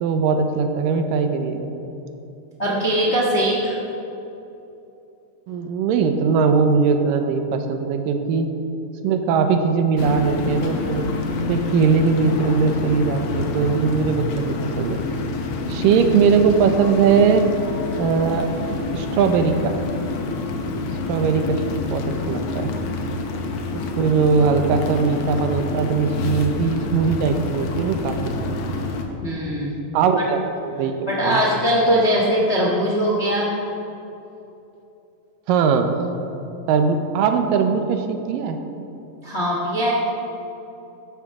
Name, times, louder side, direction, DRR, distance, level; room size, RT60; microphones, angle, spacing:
voice 1, 0.0-1.7 5.5-8.5 9.0-11.2 11.5-15.0 15.7-17.5 18.0-18.5 18.9-19.8 21.1-22.7 23.7-28.3 29.9-31.4 35.5-36.0 36.7-38.6, right 5 dB, 80° right, 6 dB, 2.4 m, -20 dB
voice 2, 2.6-3.8 29.2-29.8 31.1-33.6 39.2-39.9, equal, 45° left, -4 dB, 0.8 m, -21 dB
sound 1, 10.0-29.1, left 3 dB, 75° left, 1.3 m, -27 dB
14.0 x 11.5 x 3.7 m, 2.9 s
omnidirectional pair, 4.0 m